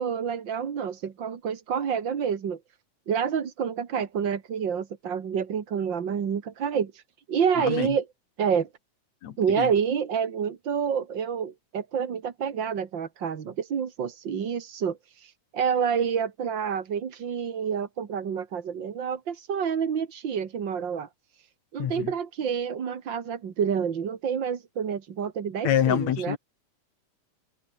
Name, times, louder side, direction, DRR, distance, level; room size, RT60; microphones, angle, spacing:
voice 1, 0.0-2.6 3.1-7.0 7.3-8.1 8.4-8.7 9.4-21.1 21.7-26.4, right 7 dB, 45° right, 2.0 m, -28 dB
voice 2, 7.6-7.9 9.2-9.7 21.8-22.1 25.6-26.4, left 10 dB, 65° left, 2.6 m, -26 dB
open air
omnidirectional pair, 3.6 m